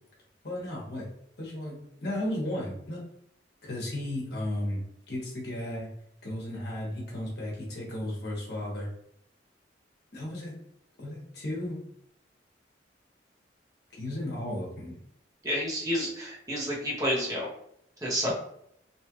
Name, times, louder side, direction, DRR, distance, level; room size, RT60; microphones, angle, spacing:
voice 1, 0.4-1.1 1.4-3.0 3.6-4.8 5.1-5.9 6.2-8.9 10.1-10.6 11.0-11.8 14.0-15.0, left 1 dB, 60° left, -4 dB, 1.2 m, -34 dB
voice 2, 15.4-17.5 18.0-18.3, equal, 20° right, -4 dB, 0.9 m, -29 dB
3.0 x 2.4 x 3.0 m, 0.71 s
head